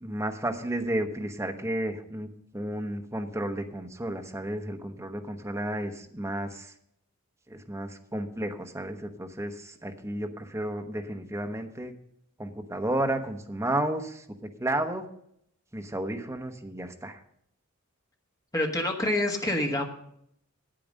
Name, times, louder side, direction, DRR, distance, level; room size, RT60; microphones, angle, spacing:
voice 1, 0.0-6.7 7.5-11.9 12.4-14.3 14.6-15.1 15.7-17.2, right 1 dB, 15° right, 4 dB, 0.9 m, -32 dB
voice 2, 18.5-19.9, left 1 dB, 15° left, 2 dB, 1.4 m, -27 dB
9.3 x 8.7 x 6.3 m, 0.71 s
head